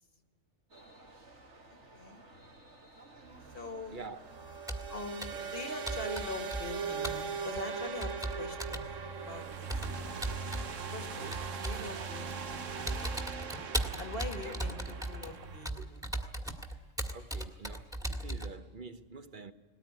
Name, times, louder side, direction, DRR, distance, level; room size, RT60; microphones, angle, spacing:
sound 1, 0.7-15.1, right 2 dB, 65° right, 2.7 m, -55 dB
sound 2, 3.2-15.7, right 6 dB, 80° right, 1.4 m, -40 dB
voice 1, 3.5-4.0 4.9-8.9 9.3-9.8 10.8-13.2 14.0-16.1, left 3 dB, 45° left, 2.1 m, -43 dB
Computer keyboard, 4.7-4.9 5.2-5.5 5.9-6.8 7.0-7.3 8.0-8.9 9.7-10.7 11.3-11.9 12.3-12.5 12.9-18.5, right 1 dB, 5° right, 1.9 m, -37 dB
voice 2, 17.1-19.5, right 4 dB, 40° right, 1.3 m, -47 dB
20.0 x 18.5 x 9.5 m
omnidirectional pair, 1.3 m